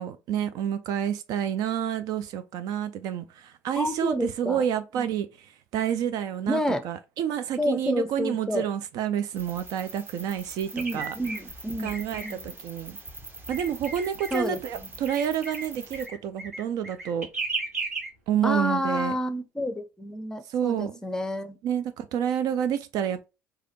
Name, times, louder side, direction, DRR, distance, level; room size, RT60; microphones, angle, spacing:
voice 1, 0.0-11.1 11.8-13.0 13.5-17.3 18.3-19.1 20.4-21.0 21.6-23.2, right 9 dB, 50° right, 0.4 m, -29 dB
voice 2, 3.8-4.6 4.9-5.1 6.5-6.8 7.6-8.6 10.7-12.4 14.3-14.6 18.4-21.6, equal, 10° left, 0.6 m, -29 dB
sound 1, 9.3-16.1, right 2 dB, 25° right, 1.1 m, -43 dB
sound 2, 10.8-11.4 11.9-12.3 13.5-14.4 15.1-15.7 15.9-18.1, right 3 dB, 85° right, 0.7 m, -34 dB
4.8 x 2.3 x 2.7 m
figure-of-eight pair, 55°, 8 cm